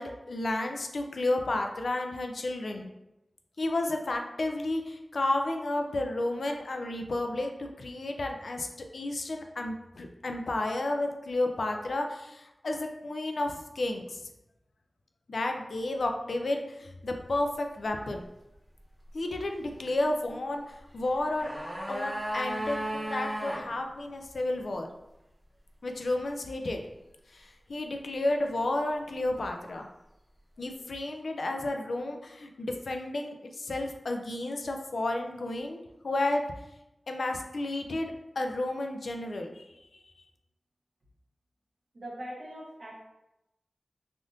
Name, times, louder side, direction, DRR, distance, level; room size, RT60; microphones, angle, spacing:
voice 1, 0.0-2.9 3.6-14.2 15.3-18.2 19.1-21.5 21.9-24.9 25.8-26.8 27.3-29.9 30.6-36.4 37.1-39.7, left 2 dB, 80° left, 4 dB, 0.3 m, -32 dB
sound 1, 21.0-23.6 23.9-24.0, equal, 15° right, 1.1 m, -34 dB
voice 2, 41.9-43.1, equal, 75° right, -5 dB, 1.0 m, -41 dB
3.4 x 2.5 x 2.5 m, 0.90 s
cardioid pair, 45°, 0 cm